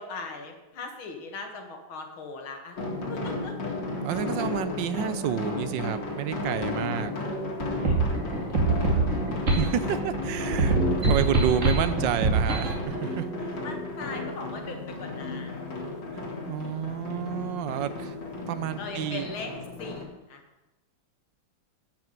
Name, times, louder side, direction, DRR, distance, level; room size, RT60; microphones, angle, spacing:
voice 1, 0.0-2.8 3.1-3.6 7.9-8.0 8.2-8.3 13.6-15.8 18.8-19.5 19.8-20.4, left 3 dB, 85° left, 4 dB, 2.5 m, -39 dB
sound 1, 2.8-20.0, left 2 dB, 65° left, 2.7 m, -34 dB
voice 2, 4.0-7.1 9.5-13.6 16.1-18.1 18.5-19.3, right 10 dB, 75° right, 13 dB, 1.3 m, -30 dB
sound 2, 7.6-12.8, right 2 dB, 40° right, 2.5 m, -24 dB
12.0 x 5.9 x 9.1 m, 1.0 s
omnidirectional pair, 2.2 m